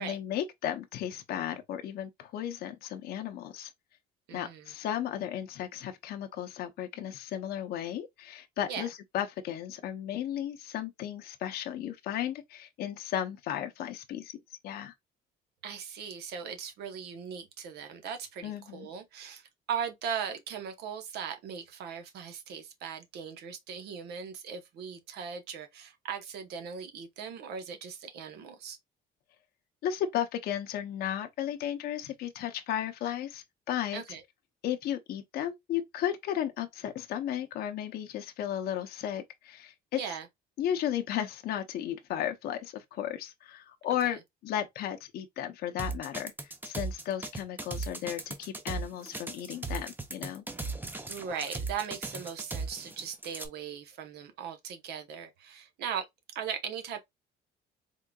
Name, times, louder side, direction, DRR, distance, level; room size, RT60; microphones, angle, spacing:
voice 1, 0.0-3.7 4.3-14.4 14.6-14.9 18.4-18.9 29.8-34.0 34.6-40.2 40.6-50.4, left 10 dB, 65° left, 0.6 m, -34 dB
voice 2, 4.3-4.7 8.7-8.9 15.6-28.8 33.9-34.2 39.9-40.3 44.0-44.2 51.1-56.0 56.3-57.0, right 7 dB, 75° right, 0.9 m, -39 dB
sound 1, 45.8-53.5, right 3 dB, 10° right, 0.6 m, -37 dB
3.7 x 3.6 x 2.2 m
cardioid pair, 110°, 17 cm